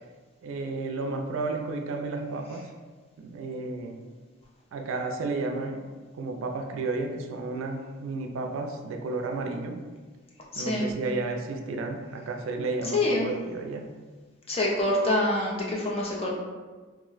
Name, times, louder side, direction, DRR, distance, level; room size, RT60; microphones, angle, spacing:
voice 1, 0.4-2.7 3.2-4.0 4.7-5.9 6.2-9.8 10.6-13.9, right 3 dB, 70° right, 4 dB, 0.3 m, -32 dB
voice 2, 10.5-10.9 12.9-13.3 14.5-16.3, left 1 dB, 30° left, -3 dB, 0.4 m, -26 dB
2.5 x 2.1 x 3.8 m, 1.4 s
head